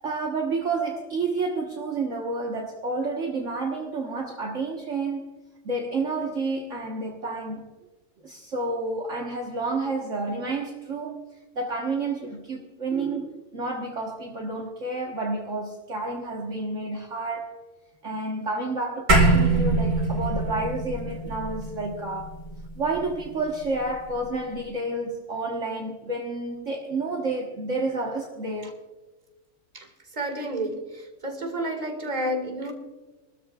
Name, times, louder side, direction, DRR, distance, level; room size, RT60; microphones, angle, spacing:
voice 1, 0.0-5.3 5.6-7.7 8.2-11.2 11.6-17.6 18.0-22.3 22.8-28.8, right 3 dB, 50° right, 1.7 m, -30 dB
sound 1, 19.1-23.7, right 2 dB, 75° right, 3.4 m, -23 dB
voice 2, 30.2-30.9 31.2-32.7, right 1 dB, 25° right, 2.2 m, -29 dB
27.0 x 13.5 x 2.4 m
omnidirectional pair, 1.6 m